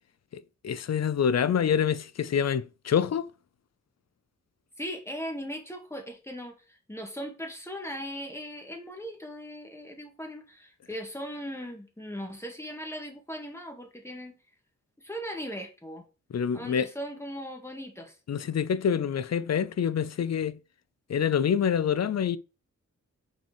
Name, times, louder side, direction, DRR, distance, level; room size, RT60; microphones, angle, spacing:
voice 1, 0.3-3.3 16.3-16.9 18.3-20.6 21.1-22.4, left 8 dB, 60° left, 0.6 m, -26 dB
voice 2, 4.8-14.4 15.0-16.0 16.5-18.2, equal, 10° left, 1.9 m, -38 dB
6.1 x 4.5 x 4.8 m
cardioid pair, 75°, 30 cm